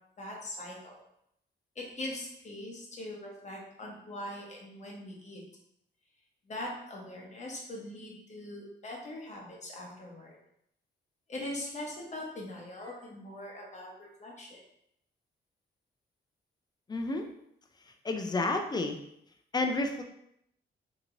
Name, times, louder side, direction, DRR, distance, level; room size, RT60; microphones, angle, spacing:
voice 1, 0.2-1.0 1.8-5.4 6.5-10.4 11.3-14.6, left 1 dB, 35° left, -2 dB, 0.9 m, -41 dB
voice 2, 16.9-17.3 18.0-19.0 19.5-20.0, left 2 dB, 20° left, 4 dB, 0.3 m, -30 dB
2.9 x 2.8 x 2.5 m, 0.75 s
cardioid pair, 115°, 20 cm